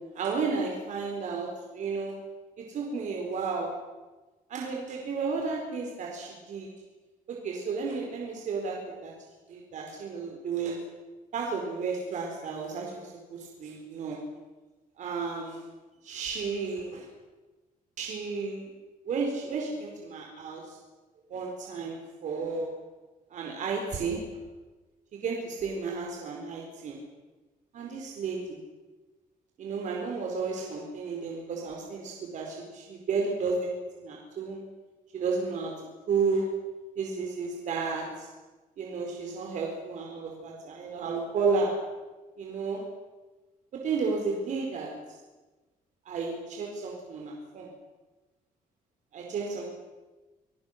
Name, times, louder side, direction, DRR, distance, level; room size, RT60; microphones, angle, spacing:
voice 1, 0.1-2.1 2.7-3.7 4.5-6.7 7.3-9.1 9.5-10.8 11.3-14.2 15.0-15.7 16.0-17.1 18.0-18.7 19.1-20.8 21.3-22.7 23.3-24.2 25.1-27.0 27.7-28.6 29.6-34.6 35.1-35.7 36.1-36.4 37.0-38.3 38.8-41.7 42.4-42.8 43.7-44.9 46.0-47.7 49.1-49.7, right 4 dB, 55° right, 0 dB, 4.7 m, -32 dB
27.5 x 18.5 x 6.8 m, 1.2 s
cardioid pair, 145°, 15 cm